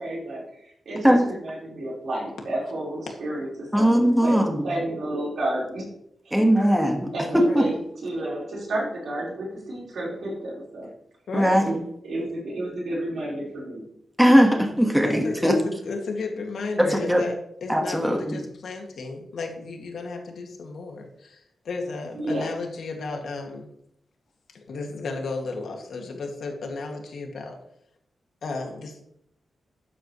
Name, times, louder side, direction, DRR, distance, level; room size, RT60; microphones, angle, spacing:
voice 1, 0.0-5.9 6.2-6.4 7.1-10.9 11.6-13.9 22.1-22.5, right 1 dB, 65° right, -4 dB, 4.5 m, -31 dB
voice 2, 3.7-4.7 6.3-7.6 11.3-11.6 14.2-15.5 16.9-17.2 17.7-18.4, equal, 5° right, 2 dB, 1.5 m, -19 dB
voice 3, 7.2-7.7 11.3-11.7 15.0-17.4 17.6-23.7 24.7-27.6 28.4-29.0, left 3 dB, 75° left, 2 dB, 2.2 m, -33 dB
12.5 x 8.8 x 3.2 m, 0.75 s
wide cardioid pair, 130°, 0 cm